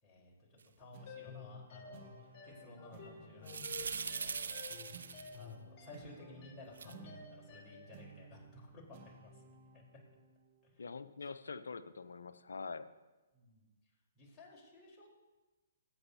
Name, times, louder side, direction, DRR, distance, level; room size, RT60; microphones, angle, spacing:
voice 1, 0.0-9.8 10.6-10.8 13.3-13.6 14.2-15.1, left 2 dB, 20° left, -4 dB, 4.1 m, -56 dB
sound 1, 0.9-11.8, right 4 dB, 45° right, 1.4 m, -59 dB
sound 2, 1.1-7.9, left 5 dB, 40° left, 3.8 m, -53 dB
sound 3, 3.5-5.4 6.8-6.9, right 5 dB, 75° right, 0.7 m, -41 dB
voice 2, 10.8-12.9, left 4 dB, 80° left, 11 dB, 0.7 m, -44 dB
22.5 x 8.9 x 2.8 m, 1.2 s
hypercardioid pair, 130°, 0 cm